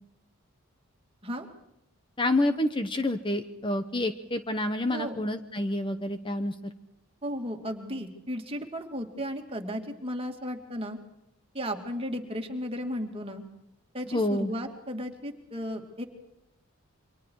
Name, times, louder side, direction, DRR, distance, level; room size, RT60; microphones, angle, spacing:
voice 1, 2.2-6.7 14.1-14.5, left 1 dB, 20° left, 8 dB, 1.0 m, -28 dB
voice 2, 4.9-5.2 7.2-11.0 11.5-13.4 13.9-16.0, equal, 25° right, 3 dB, 2.5 m, -35 dB
29.0 x 24.5 x 4.8 m, 0.83 s
head